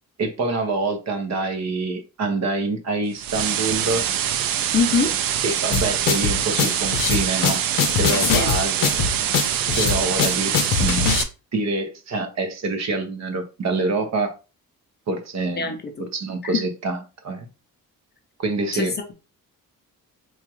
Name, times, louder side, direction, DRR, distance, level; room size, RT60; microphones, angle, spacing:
voice 1, 0.2-4.1 5.4-7.6 8.0-8.9 9.7-10.5 10.8-11.1 11.5-14.3 15.1-15.6 16.0-17.0 17.2-17.5 18.4-18.9, right 3 dB, 50° right, 1.0 m, -26 dB
sound 1, 3.2-11.2, right 10 dB, 80° right, 0.5 m, -24 dB
voice 2, 4.7-5.1 8.2-8.5 15.6-16.1 16.4-16.7 18.7-18.9, left 5 dB, 30° left, 0.5 m, -23 dB
sound 2, 5.7-11.2, left 7 dB, 70° left, 0.6 m, -22 dB
4.6 x 2.4 x 3.0 m
cardioid pair, 135°, 34 cm